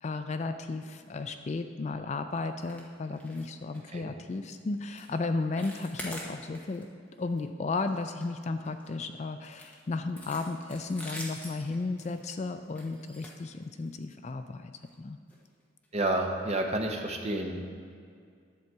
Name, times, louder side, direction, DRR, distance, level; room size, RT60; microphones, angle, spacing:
voice 1, 0.0-6.9 7.2-15.2, left 3 dB, 35° left, 9 dB, 0.3 m, -34 dB
sound 1, 2.6-2.9 3.1-3.5 3.7-3.9 4.4-4.5 4.9-5.1 5.4-6.8 7.2-7.4 7.8-8.9 9.4-14.0 14.8-14.9 15.3-15.4 15.8-15.9, equal, 5° left, 1.1 m, -45 dB
voice 2, 15.9-17.6, right 1 dB, 35° right, 2 dB, 0.8 m, -30 dB
10.5 x 7.2 x 4.6 m, 2.2 s
head